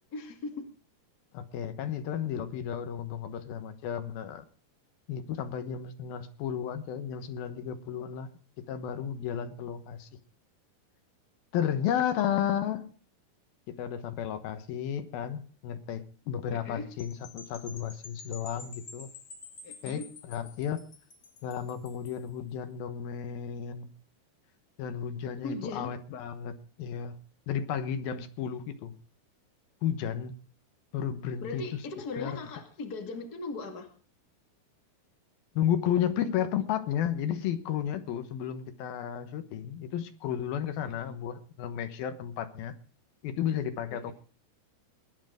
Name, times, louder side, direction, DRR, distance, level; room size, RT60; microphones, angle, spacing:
voice 1, 0.1-0.7 12.1-12.4 16.5-16.9 19.6-20.1 25.4-25.9 31.4-33.9 36.2-36.4 40.8-40.9 43.9-44.1, left 3 dB, 30° left, 4 dB, 2.2 m, -39 dB
voice 2, 1.3-4.4 5.1-8.3 8.7-10.1 11.5-12.9 13.7-19.1 19.8-20.0 20.3-20.8 21.4-23.9 24.8-27.2 27.5-28.9 29.8-30.3 30.9-31.8 32.2-32.4 35.5-42.7 43.2-44.1, left 9 dB, 70° left, 9 dB, 2.9 m, -33 dB
sound 1, 17.0-22.3, left 4 dB, 50° left, 1.2 m, -49 dB
20.0 x 10.0 x 5.1 m, 0.39 s
omnidirectional pair, 4.7 m